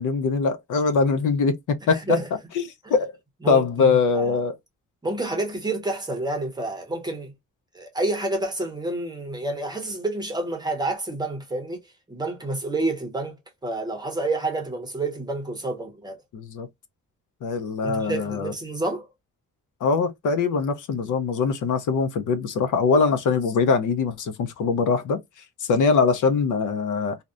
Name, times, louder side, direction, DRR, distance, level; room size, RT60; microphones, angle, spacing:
voice 1, 0.0-1.5 1.9-2.0 2.6-2.7 2.9-3.1 3.5-4.6 16.3-16.7 17.4-18.5 19.8-25.2 25.6-27.2, left 5 dB, 70° left, 0.5 m, -22 dB
voice 2, 1.9-2.3 2.8-2.9 3.4-4.4 5.0-7.3 7.7-11.8 12.1-13.3 13.6-16.2 17.8-19.1, right 2 dB, 15° right, 0.6 m, -29 dB
2.6 x 2.1 x 2.3 m
wide cardioid pair, 150°, 32 cm